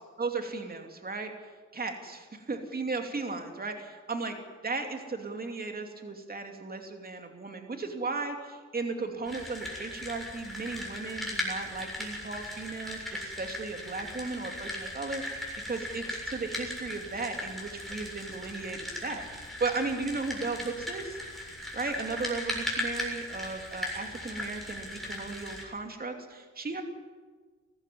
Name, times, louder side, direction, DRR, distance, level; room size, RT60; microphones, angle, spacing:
voice 1, 0.2-1.3 1.7-4.4 4.6-21.2 21.7-26.8, right 3 dB, 30° right, 4 dB, 2.9 m, -36 dB
sound 1, 9.3-25.6, left 1 dB, ahead, 7.0 m, -38 dB
19.5 x 15.0 x 9.5 m, 1.4 s
cardioid pair, 85°, 29 cm